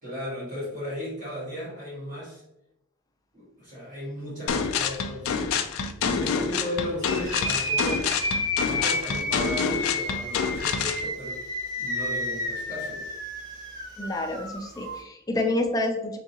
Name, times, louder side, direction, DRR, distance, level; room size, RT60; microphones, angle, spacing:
voice 1, 0.0-2.4 3.3-5.6 6.0-8.1 8.6-11.4 11.8-13.1, equal, 40° right, -6 dB, 1.3 m, -35 dB
sound 1, 4.5-11.0, left 6 dB, 75° left, 0.4 m, -27 dB
sound 2, 7.0-15.0, left 1 dB, 15° right, 1.0 m, -31 dB
voice 2, 14.0-16.2, left 2 dB, 15° left, 4 dB, 0.4 m, -28 dB
3.8 x 3.6 x 2.8 m, 0.85 s
head